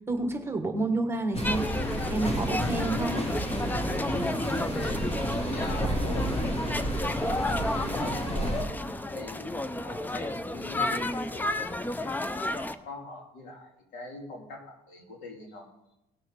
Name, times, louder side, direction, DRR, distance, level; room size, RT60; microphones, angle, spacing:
voice 1, 0.1-1.7 2.1-3.2, right 2 dB, 15° right, 4 dB, 1.6 m, -29 dB
sound 1, 1.3-8.6, equal, 35° left, 3.1 m, -31 dB
sound 2, 1.4-12.7, left 1 dB, 10° left, 0.6 m, -32 dB
voice 2, 4.5-6.6 7.3-8.8 9.1-9.4 9.8-15.7, left 2 dB, 85° left, -1 dB, 3.0 m, -43 dB
18.0 x 6.4 x 4.1 m, 0.89 s
cardioid pair, 110°, 17 cm